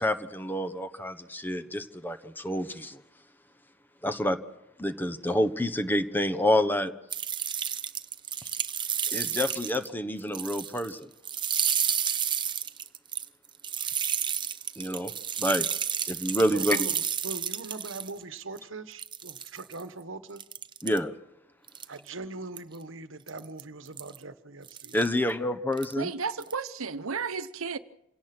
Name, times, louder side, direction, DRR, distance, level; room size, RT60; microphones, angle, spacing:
voice 1, 0.0-3.0 4.0-4.4 4.8-6.9 9.1-11.1 14.8-15.1 15.4-15.7 16.0-16.8 20.8-21.1 24.9-26.1, left 1 dB, 10° left, 1.1 m, -28 dB
sound 1, 7.1-9.9 10.2-10.9 11.2-18.1 18.6-18.7 19.0-19.8 20.4-21.0 21.7-22.1 22.6-22.8 23.3-23.6 24.0-24.2 24.7-25.1 25.7-25.9 26.3-26.5, right 8 dB, 20° right, 0.8 m, -31 dB
voice 2, 16.5-20.4 21.9-25.0, right 3 dB, 65° right, 1.3 m, -41 dB
voice 3, 26.0-27.8, right 5 dB, 85° right, 1.0 m, -33 dB
28.0 x 17.5 x 6.1 m
head